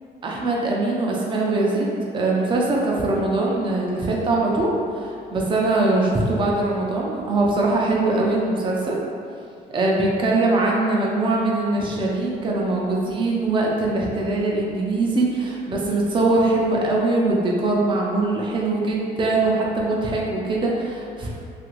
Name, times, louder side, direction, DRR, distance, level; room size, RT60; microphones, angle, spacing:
voice 1, 0.2-1.9 2.1-9.0 9.7-21.3, right 2 dB, 30° right, -2 dB, 0.5 m, -22 dB
2.8 x 2.4 x 3.0 m, 2.3 s
cardioid pair, 110°, 17 cm